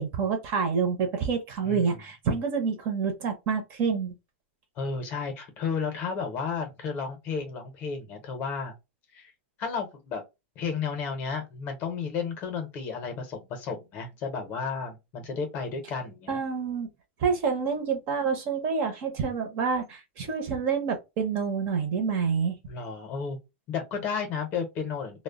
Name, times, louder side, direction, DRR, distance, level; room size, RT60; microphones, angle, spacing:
voice 1, 0.0-4.2 16.3-16.9 17.2-22.6, right 5 dB, 30° right, 0.6 m, -28 dB
voice 2, 1.6-2.0 4.8-8.7 9.1-9.3 9.6-10.2 10.6-16.4 22.7-23.4 23.7-25.2, left 5 dB, 30° left, 0.6 m, -33 dB
2.1 x 2.0 x 3.5 m
supercardioid pair, 170°, 6 cm